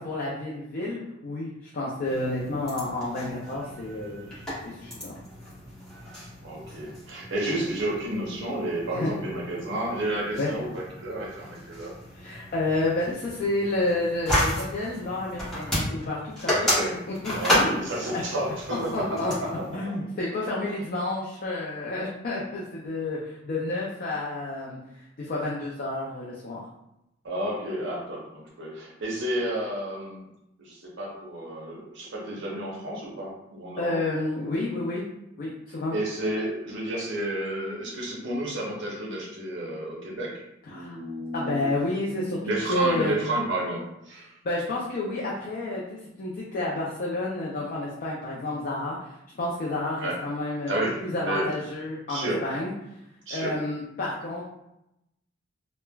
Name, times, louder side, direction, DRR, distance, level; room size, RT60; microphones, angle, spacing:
voice 1, 0.0-4.3 4.6-5.1 8.9-9.1 10.4-10.5 12.2-16.6 17.1-17.8 18.1-18.2 18.9-19.3 19.7-24.8 25.2-26.6 33.8-35.1 35.4-36.0 40.7-41.0 41.3-43.2 44.4-49.0 49.4-52.7 53.3-54.4, left 2 dB, 45° left, -5 dB, 0.4 m, -30 dB
sound 1, 2.0-19.8, equal, 5° left, 1.0 m, -32 dB
voice 2, 6.4-11.9 16.6-17.0 17.3-19.7 20.0-20.1 27.2-30.3 30.6-34.0 35.9-41.7 42.4-44.3 50.0-50.2 50.7-51.5 52.1-52.5 53.3-53.6, right 1 dB, 65° right, -2 dB, 0.7 m, -31 dB
3.1 x 2.1 x 2.2 m, 0.86 s
head